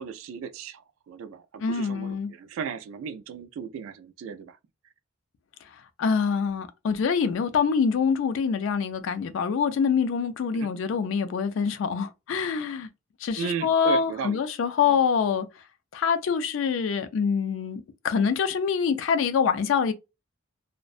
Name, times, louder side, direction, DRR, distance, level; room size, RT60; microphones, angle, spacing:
voice 1, 0.0-4.6 10.5-10.7 13.4-14.4 14.9-15.0, right 6 dB, 90° right, 0.3 m, -36 dB
voice 2, 1.6-2.3 5.7-12.9 13.2-15.5 15.9-19.9, left 6 dB, 70° left, 0.3 m, -25 dB
2.5 x 2.1 x 2.3 m
head